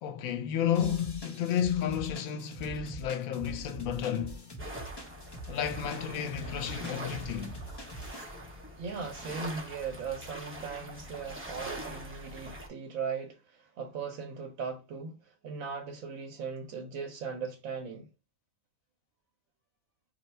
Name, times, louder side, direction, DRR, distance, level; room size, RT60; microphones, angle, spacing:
voice 1, 0.0-4.4 5.5-7.6, left 9 dB, 85° left, 1.0 m, -32 dB
sound 1, 0.7-8.2, right 1 dB, 25° left, 0.6 m, -44 dB
sound 2, 4.6-12.7, equal, 15° right, 0.4 m, -43 dB
voice 2, 8.8-18.1, right 5 dB, 75° right, 1.0 m, -38 dB
2.6 x 2.2 x 4.0 m
omnidirectional pair, 1.4 m